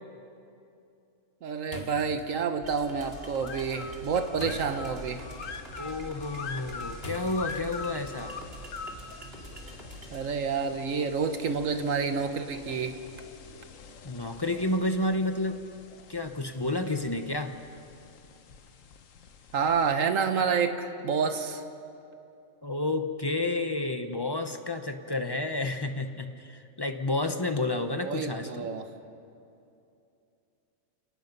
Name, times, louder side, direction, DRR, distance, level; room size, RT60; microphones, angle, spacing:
voice 1, 1.4-5.2 10.1-13.0 19.5-21.6 27.9-28.9, right 5 dB, 70° right, 7 dB, 1.6 m, -29 dB
sound 1, 1.6-8.1, left 1 dB, 45° left, 1.8 m, -47 dB
sound 2, 2.6-10.2, right 1 dB, 45° right, 2.9 m, -45 dB
sound 3, 3.0-19.9, left 5 dB, 70° left, 1.3 m, -45 dB
voice 2, 5.8-8.3 14.0-15.6 16.1-17.5 22.6-28.7, left 2 dB, 20° left, 7 dB, 0.8 m, -30 dB
29.5 x 18.5 x 5.4 m, 2.6 s
omnidirectional pair, 1.4 m